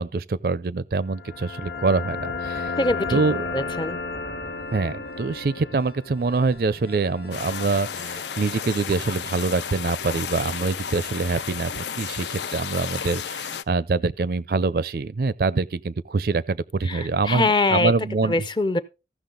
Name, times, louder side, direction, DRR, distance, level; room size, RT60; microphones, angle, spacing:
voice 1, 0.0-2.7 3.1-3.4 4.7-18.4, right 3 dB, 55° right, 0.4 m, -25 dB
sound 1, 1.1-8.7, left 4 dB, 60° left, 1.1 m, -33 dB
voice 2, 2.8-3.2 3.5-4.0 16.9-17.9 18.2-18.8, left 2 dB, 25° left, 0.6 m, -23 dB
sound 2, 7.3-13.6, left 8 dB, 80° left, 0.5 m, -33 dB
14.5 x 6.3 x 3.8 m
head